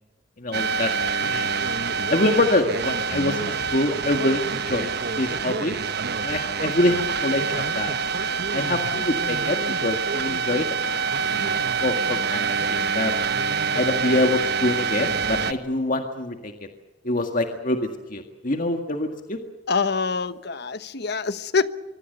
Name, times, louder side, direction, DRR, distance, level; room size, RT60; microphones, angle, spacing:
voice 1, 0.4-0.9 1.2-1.5 2.1-5.8 6.2-7.9 8.5-13.1 13.7-16.5 17.0-19.4, left 2 dB, 45° left, 5 dB, 1.8 m, -25 dB
sound 1, 0.5-15.5, right 5 dB, 60° right, 1.0 m, -26 dB
voice 2, 19.7-21.7, left 4 dB, 60° left, 13 dB, 1.2 m, -25 dB
25.0 x 24.0 x 6.8 m, 1.1 s
head